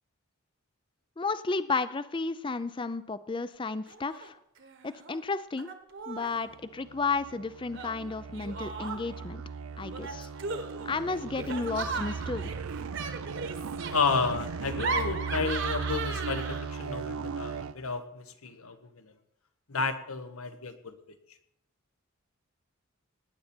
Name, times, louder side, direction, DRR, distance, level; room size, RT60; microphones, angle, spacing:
voice 1, 1.2-4.4 4.8-5.7 6.1-9.4 9.8-10.3 10.9-12.5, left 4 dB, 20° left, 14 dB, 0.4 m, -32 dB
Laughter, 3.9-4.3 4.6-5.2 5.6-6.4 7.7-9.2 9.9-16.9, right 4 dB, 55° right, 1.3 m, -37 dB
sound 1, 6.3-17.8, right 5 dB, 80° right, 0.5 m, -38 dB
voice 2, 13.9-19.1 19.7-21.0, left 4 dB, 80° left, 9 dB, 1.2 m, -32 dB
18.0 x 10.0 x 4.4 m, 0.78 s
head